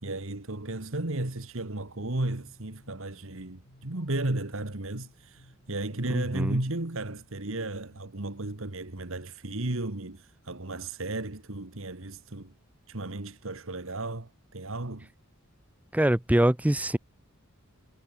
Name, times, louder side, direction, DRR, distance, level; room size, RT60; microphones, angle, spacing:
voice 1, 0.0-12.5 12.9-15.1, right 2 dB, 70° right, 1.9 m, -34 dB
sound 1, 1.2-8.8, equal, 85° left, 5.4 m, -59 dB
voice 2, 6.1-6.6 15.9-17.0, right 1 dB, 5° right, 0.6 m, -24 dB
head